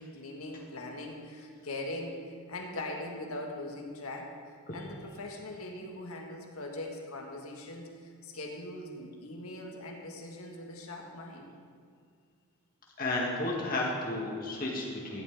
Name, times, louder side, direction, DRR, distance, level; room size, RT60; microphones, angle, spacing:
voice 1, 0.0-4.3 4.7-11.5, left 1 dB, 75° left, 1 dB, 1.8 m, -41 dB
voice 2, 13.0-15.2, left 2 dB, 40° left, -3 dB, 2.3 m, -32 dB
15.0 x 11.0 x 3.7 m, 2.1 s
head